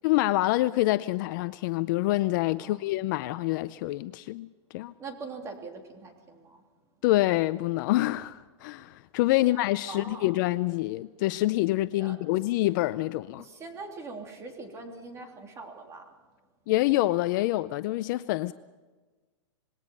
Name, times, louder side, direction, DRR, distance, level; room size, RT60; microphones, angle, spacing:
voice 1, 0.0-4.5 4.7-4.9 7.0-13.4 16.7-18.5, left 17 dB, 40° left, 0.5 m, -26 dB
voice 2, 5.0-6.6 9.4-9.5 9.9-10.3 11.9-12.2 13.4-16.1, right 3 dB, 20° right, 3.3 m, -42 dB
26.5 x 20.5 x 5.4 m
hypercardioid pair, 150°, 16 cm